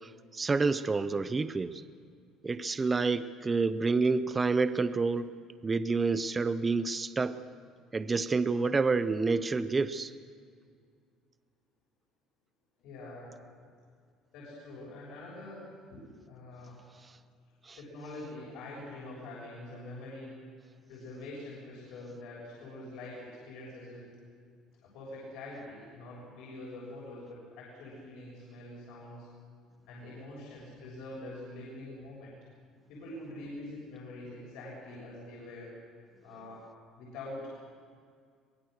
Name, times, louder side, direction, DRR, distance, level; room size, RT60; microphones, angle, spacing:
voice 1, 0.0-1.8 2.4-5.3 5.6-7.4 7.9-10.1 17.7-17.8, right 4 dB, 15° right, 13 dB, 0.5 m, -28 dB
voice 2, 12.8-13.3 14.3-16.8 17.8-20.3 20.9-24.0 24.8-29.3 29.9-32.3 32.9-35.7 36.2-36.6 37.0-37.5, left 2 dB, 65° left, -5 dB, 6.7 m, -45 dB
23.0 x 21.5 x 6.5 m, 2.1 s
cardioid pair, 180°, 0 cm